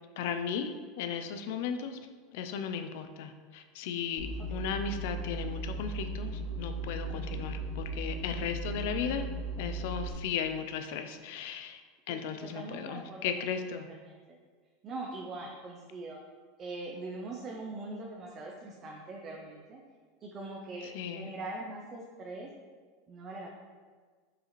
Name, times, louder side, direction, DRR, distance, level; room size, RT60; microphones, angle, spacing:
voice 1, 0.2-2.0 2.3-6.3 6.6-9.3 9.6-11.8 12.1-13.9 20.9-21.3, left 7 dB, 70° left, 8 dB, 0.3 m, -36 dB
sound 1, 4.2-10.1, right 1 dB, 10° right, 1.4 m, -37 dB
voice 2, 4.4-4.8 7.1-7.4 12.1-14.4 14.8-16.2 16.6-19.8 20.2-22.5 23.1-23.6, right 2 dB, 35° right, -1 dB, 0.4 m, -42 dB
4.7 x 2.5 x 3.0 m, 1.5 s
supercardioid pair, 120°, 0 cm